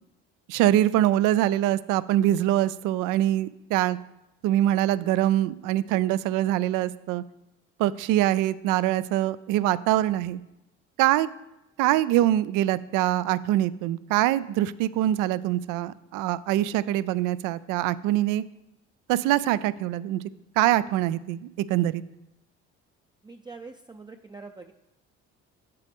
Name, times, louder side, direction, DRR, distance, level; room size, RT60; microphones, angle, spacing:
voice 1, 0.5-4.0 4.4-7.2 7.8-10.4 11.0-11.3 11.8-18.4 19.1-20.2 20.6-22.0, right 13 dB, 75° right, 17 dB, 0.5 m, -24 dB
voice 2, 23.2-24.7, right 4 dB, 15° right, 4 dB, 0.5 m, -44 dB
8.0 x 6.8 x 3.5 m, 0.91 s
supercardioid pair, 65°, 32 cm